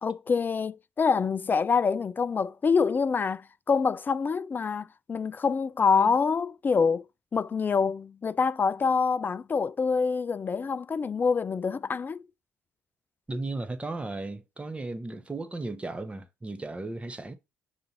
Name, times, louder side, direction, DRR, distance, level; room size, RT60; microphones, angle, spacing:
voice 1, 0.0-7.1 7.3-12.2, left 5 dB, 30° left, 0.3 m, -26 dB
voice 2, 13.3-17.4, right 2 dB, 20° right, 0.7 m, -35 dB
5.7 x 2.5 x 2.8 m
hypercardioid pair, 50°, 7 cm